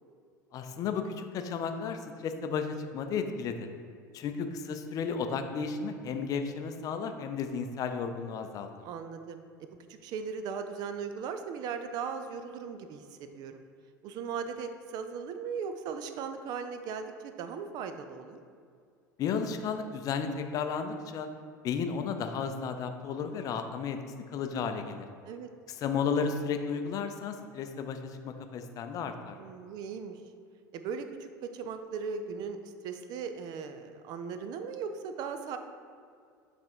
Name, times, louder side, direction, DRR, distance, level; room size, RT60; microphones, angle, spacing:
voice 1, 0.5-3.7 4.1-8.7 19.2-21.3 21.6-24.0 24.3-25.0 25.8-28.0 28.2-29.4, left 6 dB, 35° left, 6 dB, 0.5 m, -33 dB
voice 2, 8.8-9.7 10.0-13.1 13.3-13.6 14.0-18.4 25.3-25.5 29.4-30.2 30.7-35.6, right 6 dB, 45° right, 8 dB, 0.5 m, -38 dB
7.4 x 3.5 x 4.3 m, 2.2 s
figure-of-eight pair, 70°, 10 cm